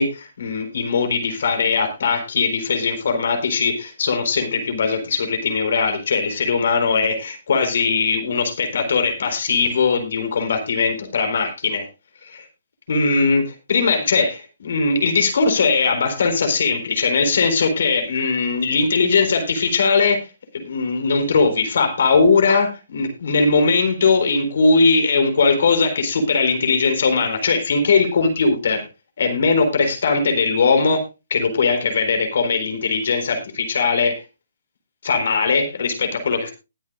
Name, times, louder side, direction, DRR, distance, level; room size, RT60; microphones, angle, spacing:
voice 1, 0.0-11.9 12.2-12.5 12.9-20.2 20.5-28.9 29.2-31.0 31.3-34.2 35.0-36.5, left 4 dB, 65° left, 6 dB, 4.2 m, -20 dB
20.0 x 8.9 x 2.5 m, 0.27 s
hypercardioid pair, 140°, 0 cm